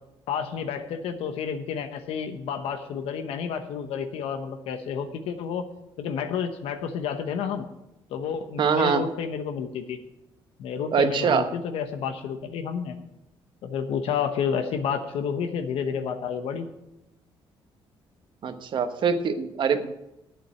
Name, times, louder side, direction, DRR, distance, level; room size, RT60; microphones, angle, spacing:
voice 1, 0.3-5.7 6.0-7.7 8.1-10.0 10.6-13.0 13.6-16.7, left 7 dB, 90° left, 8 dB, 1.0 m, -30 dB
voice 2, 8.6-9.0 10.9-11.4 18.4-19.9, right 6 dB, 55° right, 8 dB, 1.1 m, -23 dB
8.5 x 7.5 x 8.7 m, 0.89 s
cardioid pair, 115°, 9 cm